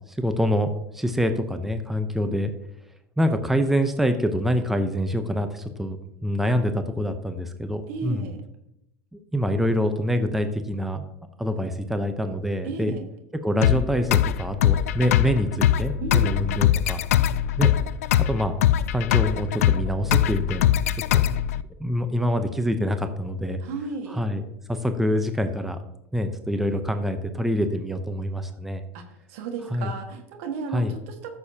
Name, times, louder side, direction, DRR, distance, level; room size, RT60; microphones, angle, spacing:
voice 1, 0.1-2.5 3.2-6.0 6.2-8.2 9.1-11.0 11.4-12.9 13.4-17.0 17.6-17.7 18.3-18.5 18.9-20.9 21.1-21.3 21.8-23.6 24.1-24.4 24.7-25.8 26.1-28.8 29.7-29.9 30.7-30.9, equal, 5° right, 7 dB, 0.8 m, -25 dB
voice 2, 7.9-8.4 12.6-13.1 16.0-16.6 23.6-24.2 28.9-31.4, right 4 dB, 70° right, 4 dB, 1.8 m, -34 dB
sound 1, 13.6-21.6, left 11 dB, 85° left, 0.4 m, -22 dB
13.5 x 7.0 x 2.9 m, 0.82 s
hypercardioid pair, 100°, 8 cm